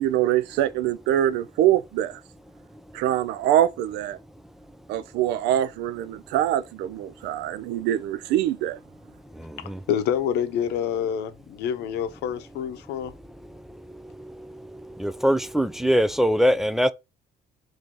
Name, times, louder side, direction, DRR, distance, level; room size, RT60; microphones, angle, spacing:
voice 1, 0.0-2.2 2.9-4.2 4.9-8.8, right 12 dB, 85° right, 0.4 m, -24 dB
voice 2, 9.6-13.1, left 9 dB, 85° left, 0.7 m, -27 dB
voice 3, 15.0-16.9, equal, ahead, 0.3 m, -21 dB
3.7 x 2.7 x 4.4 m
cardioid pair, 110°, 17 cm